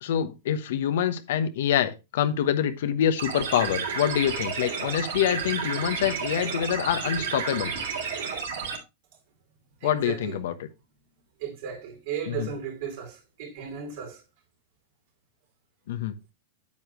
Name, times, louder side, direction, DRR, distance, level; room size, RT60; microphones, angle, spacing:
voice 1, 0.0-7.7 9.8-10.5 12.3-12.5 15.9-16.1, left 9 dB, 70° left, 1.1 m, -26 dB
sound 1, 3.2-8.8, right 6 dB, 80° right, 3.8 m, -31 dB
voice 2, 9.8-10.7 11.4-14.2, right 8 dB, 60° right, 4.2 m, -36 dB
8.7 x 8.6 x 3.1 m
hypercardioid pair, 130°, 0 cm